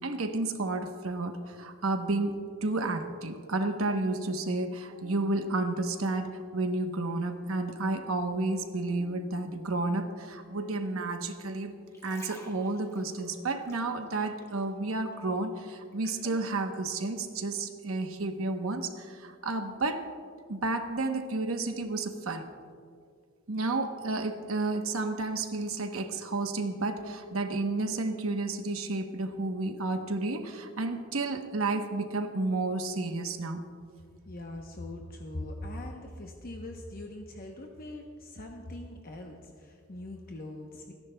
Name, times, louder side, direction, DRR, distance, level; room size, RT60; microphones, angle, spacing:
voice 1, 0.0-2.3 2.6-11.7 12.0-20.0 20.5-22.5 23.5-33.6, right 2 dB, 80° right, 6 dB, 1.0 m, -31 dB
sound 1, 11.7-14.8 15.1-16.5 17.1-17.2, left 1 dB, 15° left, 2.0 m, -52 dB
voice 2, 34.3-40.9, left 1 dB, 45° left, 2 dB, 0.8 m, -41 dB
28.5 x 10.5 x 2.2 m, 2.2 s
head